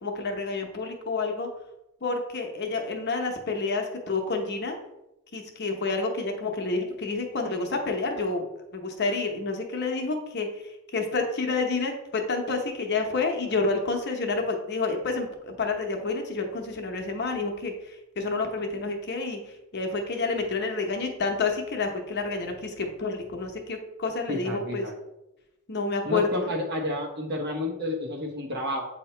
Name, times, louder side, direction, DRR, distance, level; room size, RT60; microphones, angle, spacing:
voice 1, 0.0-1.5 2.0-4.7 5.3-8.4 8.7-10.5 10.9-17.7 18.2-19.4 19.7-24.9 25.7-26.5, left 3 dB, 50° left, 3 dB, 0.8 m, -29 dB
voice 2, 24.3-24.9 26.0-28.9, left 1 dB, 50° right, 2 dB, 1.1 m, -30 dB
8.1 x 2.8 x 4.3 m, 0.92 s
head